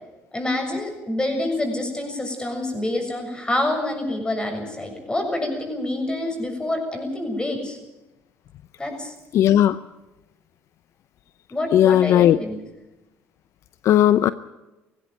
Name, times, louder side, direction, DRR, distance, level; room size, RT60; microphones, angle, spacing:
voice 1, 0.3-7.8 8.8-9.1 11.5-12.6, left 1 dB, 15° left, 3 dB, 7.0 m, -27 dB
voice 2, 9.3-9.8 11.7-12.4 13.8-14.3, left 11 dB, 65° left, 15 dB, 0.6 m, -16 dB
19.0 x 16.0 x 9.1 m, 1.0 s
supercardioid pair, 85°, 5 cm